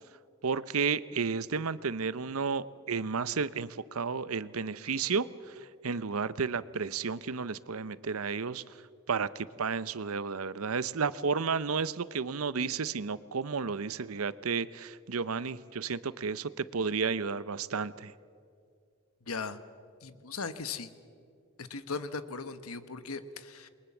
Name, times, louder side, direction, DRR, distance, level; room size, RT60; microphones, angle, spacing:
voice 1, 0.4-5.5 5.8-8.6 9.1-18.1, right 5 dB, 80° right, 17 dB, 0.8 m, -32 dB
voice 2, 19.3-19.6 20.0-20.9 21.6-23.7, left 4 dB, 85° left, 12 dB, 1.3 m, -38 dB
28.0 x 22.5 x 7.2 m, 2.3 s
head